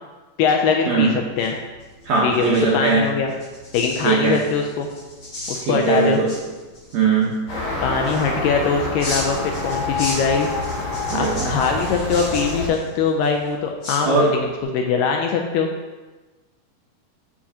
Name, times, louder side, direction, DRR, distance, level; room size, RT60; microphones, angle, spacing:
voice 1, 0.4-1.1 1.4-1.5 2.2-3.3 3.7-4.9 5.5-6.2 7.8-10.5 11.1-15.7, left 5 dB, 80° left, 2 dB, 2.0 m, -22 dB
sound 1, 1.3-14.6, left 1 dB, 40° left, 1.6 m, -37 dB
voice 2, 2.0-3.1 4.0-4.4 5.6-6.3 6.9-7.4 11.1-11.5 14.0-14.3, right 4 dB, 70° right, -6 dB, 1.7 m, -19 dB
sound 2, 7.5-12.7, left 2 dB, 65° left, 4.1 m, -27 dB
7.2 x 7.2 x 2.8 m, 1.2 s
omnidirectional pair, 4.2 m